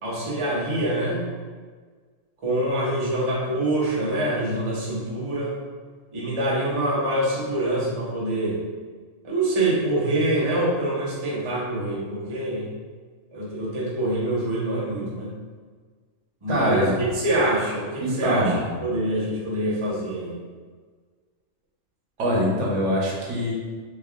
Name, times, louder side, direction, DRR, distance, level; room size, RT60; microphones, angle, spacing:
voice 1, 0.0-1.2 2.4-5.6 6.1-8.6 9.2-12.7 13.3-15.3 16.4-18.5 18.8-20.3, right 1 dB, 30° right, -6 dB, 0.7 m, -25 dB
voice 2, 16.5-17.0 18.0-18.6 22.2-23.5, equal, 70° right, -4 dB, 1.1 m, -23 dB
3.5 x 3.1 x 2.4 m, 1.5 s
omnidirectional pair, 1.3 m